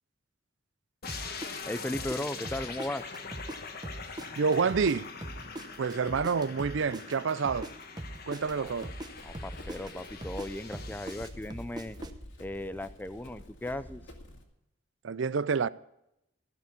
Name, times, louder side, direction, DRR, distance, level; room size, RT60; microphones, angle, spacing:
sound 1, 1.0-11.3, left 5 dB, 50° left, 1.3 m, -43 dB
sound 2, 1.1-3.6 3.8-7.7 8.0-12.1, right 1 dB, 20° right, 0.9 m, -41 dB
voice 1, 1.7-3.1 8.6-8.7 9.2-12.0 12.4-14.0, left 1 dB, 10° left, 0.5 m, -37 dB
voice 2, 4.4-5.1 5.8-7.7 8.3-8.9 15.0-15.7, right 5 dB, 65° right, 0.5 m, -28 dB
Run, 8.4-14.4, left 1 dB, 70° left, 2.3 m, -49 dB
15.5 x 6.8 x 8.2 m
head